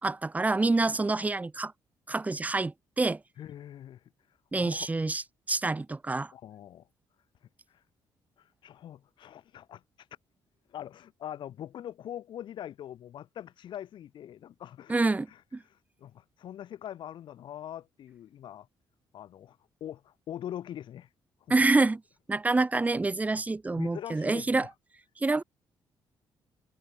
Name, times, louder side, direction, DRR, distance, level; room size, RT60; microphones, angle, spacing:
voice 1, 0.0-1.7 2.1-3.2 4.5-5.2 5.5-6.3 14.9-15.3 15.5-15.6 21.5-22.0 22.3-24.7 25.2-25.4, right 3 dB, 15° right, 2.8 m, -27 dB
voice 2, 3.4-4.0 4.6-4.9 6.3-6.9 7.7-7.8 8.4-10.1 10.7-15.0 15.3-18.7 19.1-21.1 21.4-21.6 23.7-24.7, left 11 dB, 70° left, 5.9 m, -43 dB
cardioid pair, 125°, 8 cm